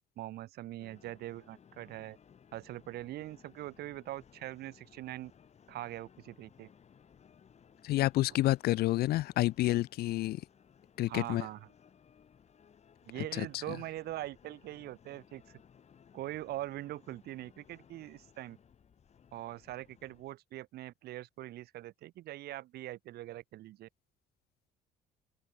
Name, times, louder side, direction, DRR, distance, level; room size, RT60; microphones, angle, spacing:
voice 1, 0.2-2.2 2.5-5.3 5.7-6.7 11.1-11.6 13.1-15.4 16.1-18.6 19.3-23.9, right 15 dB, 70° right, 1.2 m, -42 dB
sound 1, 0.8-20.3, left 7 dB, 40° left, 4.2 m, -61 dB
voice 2, 7.8-10.4 11.0-11.5 13.1-13.8, left 16 dB, 70° left, 0.5 m, -29 dB
open air
cardioid pair, 110°, 17 cm